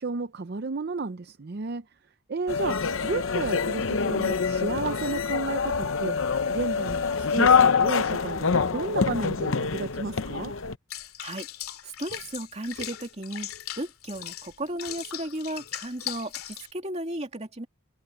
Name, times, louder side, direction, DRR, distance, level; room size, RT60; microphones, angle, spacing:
voice 1, 0.0-1.8 2.3-6.2 6.5-10.5, right 3 dB, 50° right, 0.6 m, -32 dB
sound 1, 2.5-10.7, left 5 dB, 65° left, 0.7 m, -25 dB
Water / Bathtub (filling or washing), 10.9-16.7, left 11 dB, 85° left, 2.6 m, -39 dB
voice 2, 11.8-13.5 13.8-17.7, right 1 dB, 30° right, 2.9 m, -35 dB
open air
head